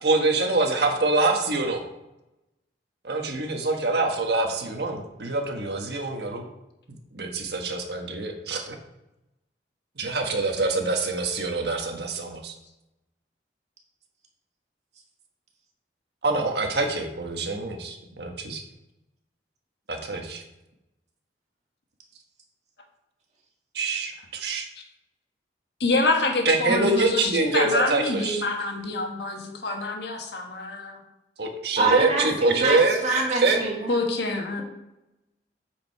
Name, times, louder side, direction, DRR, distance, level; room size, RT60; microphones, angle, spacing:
voice 1, 0.0-1.8 3.0-6.4 7.1-8.7 10.0-12.5 16.2-18.6 19.9-20.4 23.7-24.7 26.4-28.4 31.4-33.0 33.4-33.6, right 3 dB, 65° right, 3 dB, 1.4 m, -25 dB
voice 2, 25.8-31.0 33.9-34.6, left 2 dB, 70° left, 2 dB, 1.4 m, -26 dB
voice 3, 31.8-33.9, right 3 dB, 40° right, -1 dB, 1.9 m, -25 dB
8.4 x 5.1 x 4.7 m, 0.93 s
head